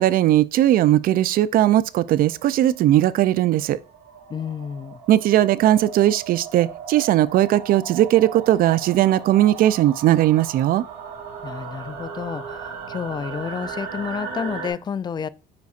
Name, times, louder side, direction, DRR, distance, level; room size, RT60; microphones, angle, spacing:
voice 1, 0.0-3.8 5.1-10.8, right 13 dB, 60° right, 0.4 m, -18 dB
sound 1, 1.9-14.7, right 6 dB, 80° right, 2.1 m, -37 dB
voice 2, 4.3-5.0 11.4-15.3, left 7 dB, 25° left, 0.3 m, -30 dB
9.5 x 4.1 x 2.5 m
cardioid pair, 110°, 17 cm